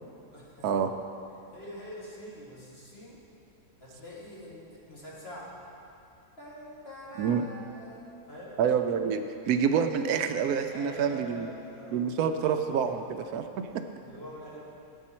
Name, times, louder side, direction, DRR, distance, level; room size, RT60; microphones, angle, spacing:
voice 1, 0.2-0.7 1.5-3.2 3.8-5.5 6.4-8.6 10.7-12.0 12.4-12.9 14.0-14.7, equal, 40° left, -6 dB, 2.3 m, -45 dB
voice 2, 8.6-11.5 11.9-13.5 13.7-13.8, right 7 dB, 80° right, 7 dB, 1.1 m, -27 dB
13.0 x 8.3 x 4.3 m, 2.7 s
omnidirectional pair, 1.6 m